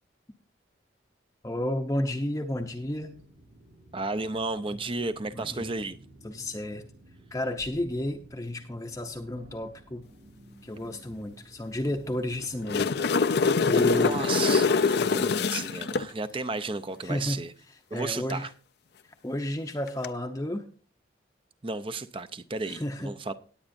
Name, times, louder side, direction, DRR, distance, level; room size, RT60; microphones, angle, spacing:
voice 1, 1.4-3.2 5.3-5.7 6.2-6.9 7.3-10.1 10.6-12.9 13.7-14.3 15.0-15.3 17.0-17.4 17.9-18.5 19.0-20.6 22.6-23.1, left 1 dB, 15° left, 0.7 m, -32 dB
sound 1, 2.5-14.4, right 1 dB, 90° right, 4.3 m, -53 dB
voice 2, 3.9-6.0 13.7-17.5 17.9-18.5 21.6-23.3, right 3 dB, 30° right, 0.6 m, -33 dB
sound 2, 12.4-16.1 19.9-20.1, left 5 dB, 60° left, 0.5 m, -24 dB
19.0 x 8.6 x 2.6 m
head